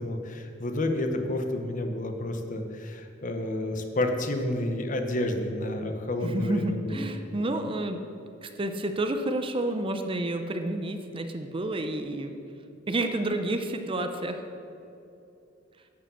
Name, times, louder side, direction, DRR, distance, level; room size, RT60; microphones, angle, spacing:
voice 1, 0.0-7.0, left 1 dB, 45° left, 6 dB, 0.8 m, -30 dB
voice 2, 6.2-8.0 8.4-12.4 12.9-14.5, right 1 dB, 30° right, 7 dB, 0.6 m, -30 dB
11.0 x 4.9 x 6.8 m, 2.7 s
head